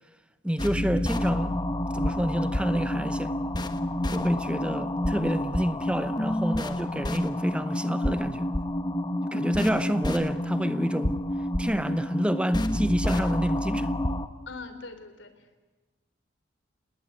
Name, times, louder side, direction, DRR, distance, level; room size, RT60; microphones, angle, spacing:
voice 1, 0.4-1.6 1.9-3.4 4.1-8.5 9.3-11.2 11.6-13.9, equal, 5° right, 0.8 m, -28 dB
sound 1, 0.6-14.3, left 1 dB, 20° left, 1.3 m, -29 dB
voice 2, 14.5-15.6, left 3 dB, 75° left, 3.6 m, -42 dB
28.5 x 20.5 x 9.6 m
head